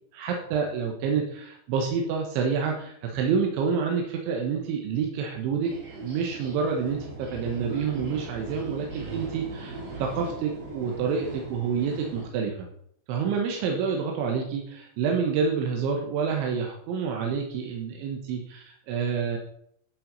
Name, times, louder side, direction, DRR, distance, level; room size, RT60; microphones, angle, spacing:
voice 1, 0.1-5.7 6.0-12.7 13.1-19.4, right 6 dB, 85° right, 2 dB, 3.7 m, -28 dB
sound 1, 5.6-12.3, right 2 dB, 55° right, 4.7 m, -39 dB
12.0 x 6.1 x 5.4 m, 0.68 s
omnidirectional pair, 5.4 m